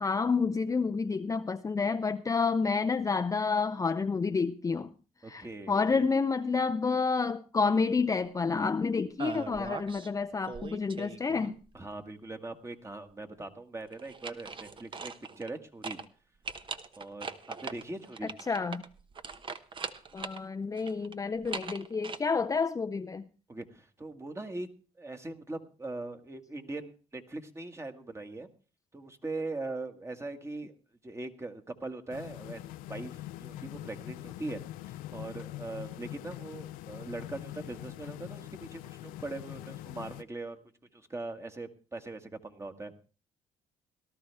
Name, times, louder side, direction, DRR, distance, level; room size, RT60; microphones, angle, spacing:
voice 1, 0.0-4.9 5.3-11.5 18.5-18.8 20.1-23.2, left 4 dB, 25° left, 0.6 m, -29 dB
voice 2, 5.2-6.0 11.7-16.0 17.0-18.3 23.5-24.7 25.0-28.5 28.9-30.7 31.0-34.6 34.9-40.6 40.9-42.9, right 2 dB, 20° right, 1.7 m, -41 dB
sound 1, 9.2-10.1 10.4-11.8 13.9-15.6 15.8-16.1 16.4-20.4 20.8-22.2, right 4 dB, 35° right, 1.0 m, -41 dB
sound 2, 32.1-40.2, left 14 dB, 80° left, 0.6 m, -43 dB
18.0 x 12.5 x 3.4 m
supercardioid pair, 70°, 14 cm